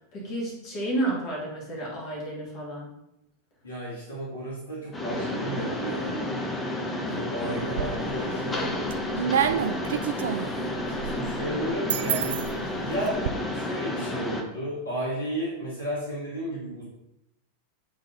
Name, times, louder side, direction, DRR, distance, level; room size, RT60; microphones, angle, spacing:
voice 1, 0.0-2.9, right 1 dB, 40° left, -4 dB, 2.7 m, -31 dB
voice 2, 3.6-6.3 7.0-8.7 9.6-9.8 10.1-10.6 11.0-12.4 12.8-13.2 13.5-16.8, right 1 dB, 70° left, -6 dB, 1.9 m, -33 dB
Mechanisms, 4.9-14.4, left 1 dB, 15° left, 0.8 m, -31 dB
sound 1, 7.5-8.2 8.7-13.3, right 8 dB, 60° right, 0.4 m, -29 dB
7.9 x 3.8 x 4.0 m, 0.83 s
figure-of-eight pair, 90°, 0 cm